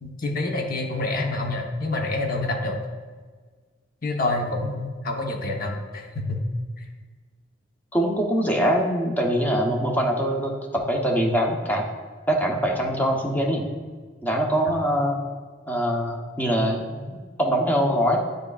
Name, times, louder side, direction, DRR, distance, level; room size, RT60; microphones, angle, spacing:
voice 1, 0.0-2.8 4.0-6.4, left 2 dB, 50° left, 2 dB, 1.0 m, -27 dB
voice 2, 7.9-11.8 12.3-13.6 14.2-15.2 15.7-18.2, equal, 10° left, 0 dB, 0.8 m, -23 dB
9.5 x 5.2 x 2.4 m, 1.5 s
head